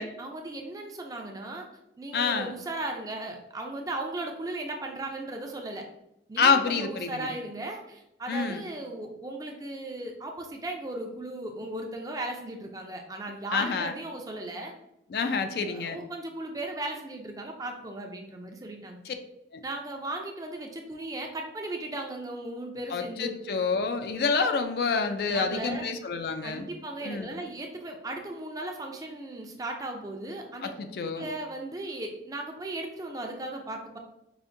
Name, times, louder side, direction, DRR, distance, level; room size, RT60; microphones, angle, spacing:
voice 1, 0.0-1.7 2.0-5.8 6.3-14.7 15.6-19.0 19.6-23.6 25.3-25.9 26.4-30.7 31.0-34.0, right 2 dB, 20° right, 2 dB, 0.4 m, -37 dB
voice 2, 2.1-2.5 6.4-7.3 8.3-8.6 13.5-13.9 15.1-16.0 19.1-19.2 22.9-26.7 27.0-27.3 30.6-31.3, left 5 dB, 60° left, 7 dB, 0.3 m, -27 dB
4.9 x 2.5 x 2.5 m, 0.84 s
head